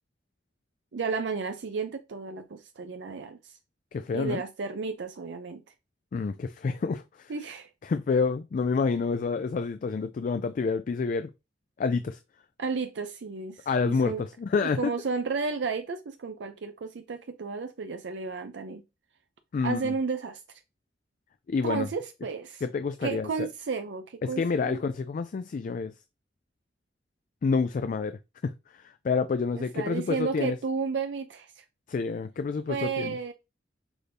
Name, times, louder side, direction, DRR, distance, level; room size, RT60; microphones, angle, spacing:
voice 1, 0.9-3.5 4.1-5.6 7.3-7.7 12.6-14.2 14.6-18.8 19.6-20.4 21.6-22.6 23.0-24.8 29.5-31.6 32.7-33.3, right 4 dB, 85° right, 0.5 m, -33 dB
voice 2, 3.9-4.4 6.1-7.3 7.8-11.3 11.8-12.2 13.7-14.8 19.5-19.9 21.5-21.9 22.6-23.5 24.2-25.9 27.4-30.6 31.9-33.2, left 4 dB, 50° left, 0.3 m, -28 dB
6.0 x 2.6 x 3.3 m
head